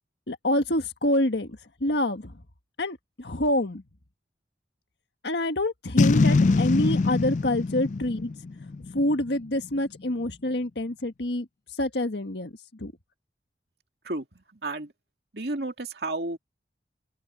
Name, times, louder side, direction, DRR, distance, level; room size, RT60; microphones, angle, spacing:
voice 1, 0.3-2.3 2.8-3.8 5.2-8.3 8.9-11.5 11.8-12.9, left 1 dB, 70° left, 1.6 m, -27 dB
Boom, 6.0-9.3, left 3 dB, 40° left, 0.3 m, -23 dB
voice 2, 14.0-14.9 15.3-16.4, right 2 dB, 65° right, 2.5 m, -32 dB
open air
head